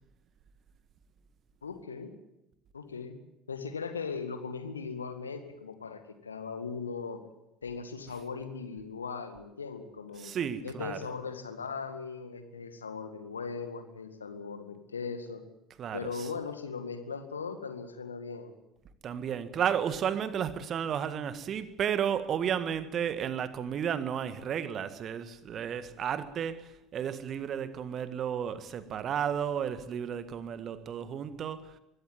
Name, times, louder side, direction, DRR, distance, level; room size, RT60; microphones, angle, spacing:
voice 1, 1.6-2.1 2.7-3.2 3.5-7.2 7.6-10.3 10.6-15.5 15.9-18.5, left 5 dB, 80° left, 2.1 m, -39 dB
voice 2, 10.2-11.0 15.8-16.3 19.0-31.8, right 8 dB, 40° right, 1.8 m, -33 dB
23.0 x 16.5 x 9.3 m
figure-of-eight pair, 65°, 0 cm